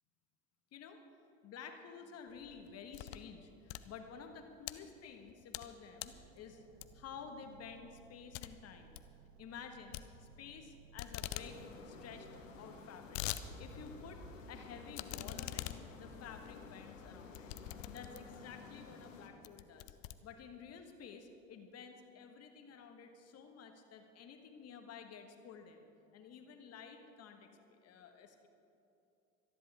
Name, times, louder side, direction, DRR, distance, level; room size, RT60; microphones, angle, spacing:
voice 1, 1.4-6.7 6.9-9.0 9.4-12.3 12.6-13.3 13.6-14.2 14.5-17.5 17.9-20.0 20.2-28.5, left 6 dB, 40° left, 5 dB, 1.6 m, -52 dB
sound 1, 2.3-3.3 3.6-4.7 5.2-5.7 6.0-6.3 6.8-7.2 7.6-7.7 8.0-8.1 8.3-8.5 8.8-9.1 9.9-10.7 11.0-11.5 11.8-11.9 12.1-12.2 12.7-13.4 13.9-14.0 14.9-18.4 19.0-19.1 19.4-20.7, left 15 dB, 55° left, 0.7 m, -44 dB
sound 2, 6.0-14.4, right 7 dB, 55° right, 0.9 m, -62 dB
sound 3, 11.3-19.3, left 4 dB, 75° left, 1.6 m, -52 dB
25.5 x 10.5 x 3.6 m, 2.8 s
figure-of-eight pair, 70°, 39 cm